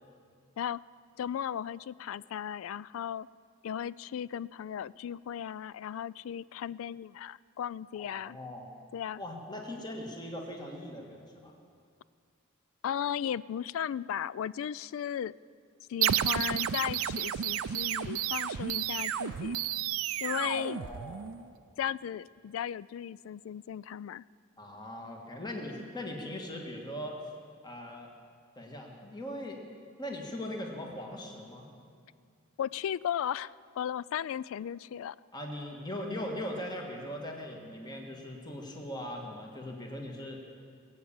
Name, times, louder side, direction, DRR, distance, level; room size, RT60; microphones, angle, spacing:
voice 1, 1.2-3.3 3.6-8.4 8.9-9.2 12.8-15.3 15.9-19.5 20.2-20.8 21.8-24.2 32.6-35.2, left 9 dB, 70° left, 21 dB, 0.3 m, -36 dB
voice 2, 8.0-8.7 9.2-11.5 20.3-21.2 24.6-27.2 27.6-28.1 28.5-29.6 30.0-31.7 35.3-40.4, left 1 dB, 20° left, 1 dB, 1.7 m, -40 dB
sound 1, 16.0-21.4, right 10 dB, 85° right, 0.5 m, -31 dB
22.5 x 8.6 x 7.2 m, 2.2 s
head